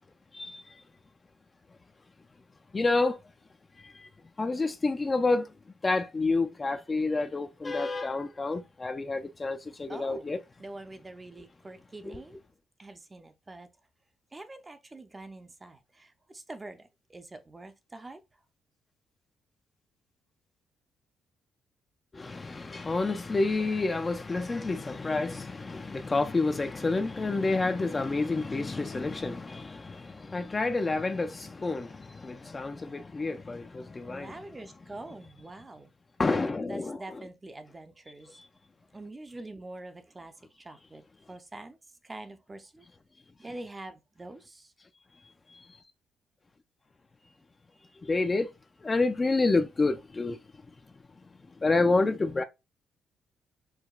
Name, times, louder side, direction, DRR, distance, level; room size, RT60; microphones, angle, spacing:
voice 1, 2.7-3.2 3.8-4.1 4.4-5.5 5.8-10.4 12.0-12.1 22.1-34.3 36.2-37.0 48.0-48.5 48.8-50.4 51.6-52.4, left 3 dB, 25° left, 0.4 m, -29 dB
voice 2, 9.9-10.3 10.6-12.4 12.8-13.7 14.3-18.2 34.1-35.9 36.7-38.4 38.9-41.8 42.0-42.8 43.4-44.7, right 2 dB, 20° right, 0.5 m, -45 dB
4.6 x 2.2 x 2.3 m
cardioid pair, 90°, 0 cm